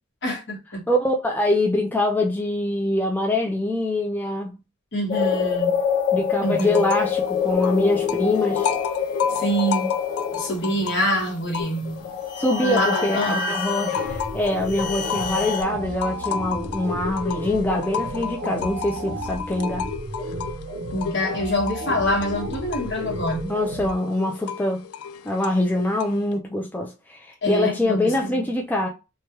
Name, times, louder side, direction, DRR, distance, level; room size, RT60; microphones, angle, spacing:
voice 1, 0.2-0.8 4.9-5.8 6.4-6.9 9.3-9.9 10.4-12.0 12.6-13.9 20.9-23.5 27.4-28.5, equal, 60° left, 1.3 m, -26 dB
voice 2, 0.9-4.5 6.1-8.7 12.4-19.9 23.4-24.8 25.2-28.9, left 1 dB, 10° left, 0.4 m, -24 dB
sound 1, 5.1-15.6, left 7 dB, 40° left, 1.5 m, -26 dB
sound 2, 6.5-7.2 7.4-12.1 12.5-26.3, left 7 dB, 85° left, 0.3 m, -33 dB
sound 3, 13.9-23.9, right 1 dB, 55° right, 0.6 m, -33 dB
3.2 x 2.3 x 2.9 m
head